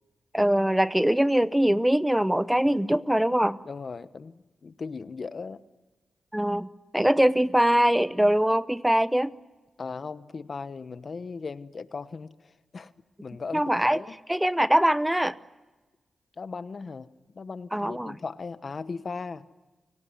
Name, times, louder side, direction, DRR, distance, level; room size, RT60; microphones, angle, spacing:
voice 1, 0.3-3.6 6.3-9.3 13.5-14.0 14.3-15.4 17.7-18.1, right 1 dB, 5° right, 15 dB, 0.8 m, -22 dB
voice 2, 3.6-5.6 9.8-12.9 13.2-14.2 16.4-17.1 17.3-19.5, left 4 dB, 55° left, 13 dB, 1.1 m, -37 dB
29.5 x 17.5 x 9.7 m, 1.2 s
cardioid pair, 60°, 0 cm